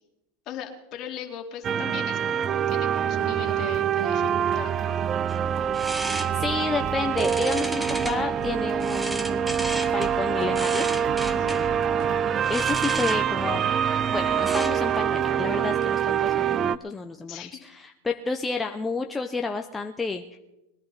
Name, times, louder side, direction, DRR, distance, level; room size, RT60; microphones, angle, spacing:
voice 1, 0.5-5.0 11.3-11.6 17.2-17.6, left 9 dB, 45° left, 2 dB, 2.6 m, -39 dB
sound 1, 1.6-16.8, right 8 dB, 35° right, 0.5 m, -25 dB
sound 2, 5.3-15.0, right 1 dB, 5° right, 1.1 m, -36 dB
voice 2, 6.0-9.5 9.8-10.8 12.3-13.7 14.1-20.4, left 4 dB, 10° left, 4 dB, 0.8 m, -31 dB
sound 3, 6.4-12.8, right 9 dB, 50° right, 1.1 m, -42 dB
21.5 x 11.0 x 4.2 m, 0.97 s
hypercardioid pair, 110°, 0 cm